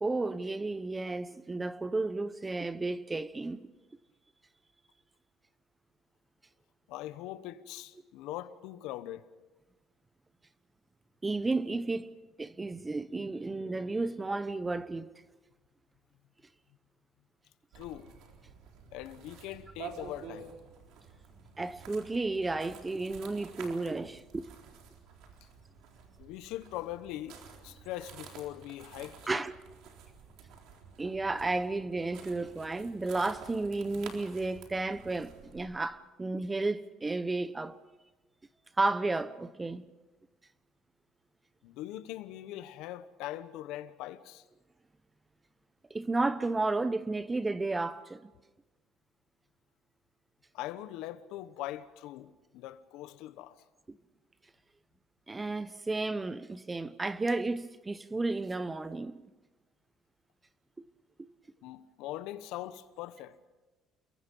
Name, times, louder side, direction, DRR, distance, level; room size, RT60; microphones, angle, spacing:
voice 1, 0.0-3.6 11.2-12.1 12.4-15.1 21.6-24.5 29.3-29.5 31.0-37.8 38.8-39.8 45.9-48.2 53.9-54.0 55.3-59.2 61.2-61.3, right 3 dB, 15° right, 1.0 m, -32 dB
voice 2, 6.9-9.3 17.7-18.1 18.9-20.5 25.4-25.5 26.2-29.4 41.6-44.4 50.5-53.6 61.6-63.4, left 14 dB, 80° left, 1.0 m, -41 dB
sound 1, 17.7-35.7, right 6 dB, 75° right, 4.0 m, -51 dB
28.5 x 22.5 x 5.5 m
cardioid pair, 110°, 0 cm